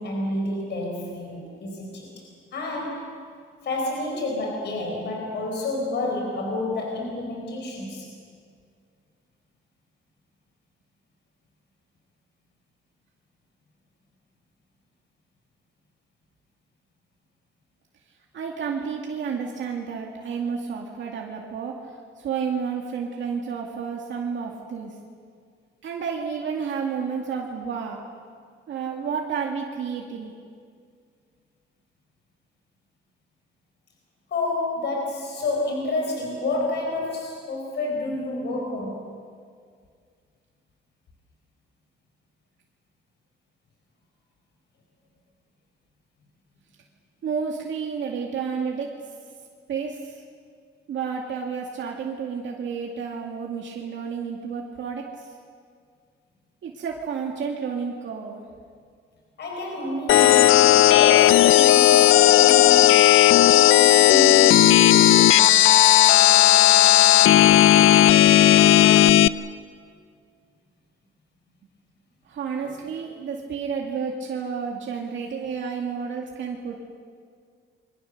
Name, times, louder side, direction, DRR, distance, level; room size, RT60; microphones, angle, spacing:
voice 1, 0.0-2.1 2.5-3.2 3.6-8.1 34.3-39.1 59.4-63.1 63.5-65.6, left 2 dB, 55° left, 0 dB, 5.0 m, -29 dB
voice 2, 18.3-24.9 25.8-28.0 28.7-30.3 47.2-48.9 49.7-50.2 50.9-55.3 56.6-58.4 72.2-76.8, right 6 dB, 65° right, 0 dB, 2.3 m, -31 dB
sound 1, 60.1-69.3, left 13 dB, 80° left, 0.5 m, -14 dB
29.5 x 23.5 x 6.7 m, 2.1 s
cardioid pair, 150°, 21 cm